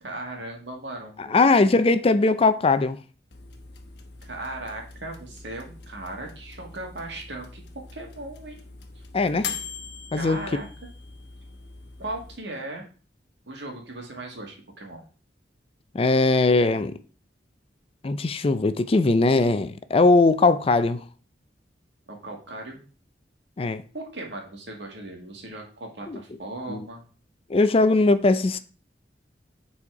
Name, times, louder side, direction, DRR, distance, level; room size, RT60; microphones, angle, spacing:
voice 1, 0.0-1.5 4.2-7.6 7.9-8.6 9.0-9.1 10.1-10.7 12.0-12.8 13.5-15.0 22.1-22.8 23.9-27.0, right 2 dB, 75° right, 2.0 m, -37 dB
voice 2, 1.2-3.0 9.1-9.5 10.1-10.4 15.9-16.9 18.0-21.0 23.6-23.8 26.1-26.2 26.7-26.8 27.5-28.6, left 3 dB, 30° left, 0.4 m, -20 dB
sound 1, 3.3-12.4, left 5 dB, 65° left, 1.0 m, -41 dB
7.2 x 4.2 x 4.8 m
head